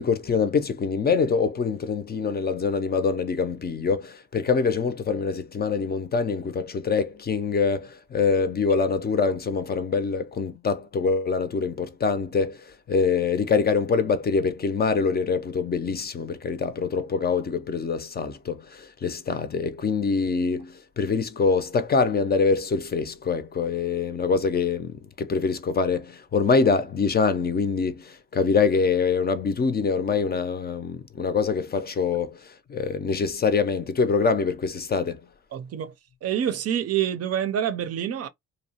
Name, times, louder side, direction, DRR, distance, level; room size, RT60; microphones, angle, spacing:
voice 1, 0.0-35.2, left 5 dB, 35° left, 0.5 m, -24 dB
voice 2, 35.5-35.9 36.2-38.3, right 10 dB, 55° right, 0.5 m, -27 dB
2.7 x 2.1 x 2.7 m
cardioid pair, 90°, 30 cm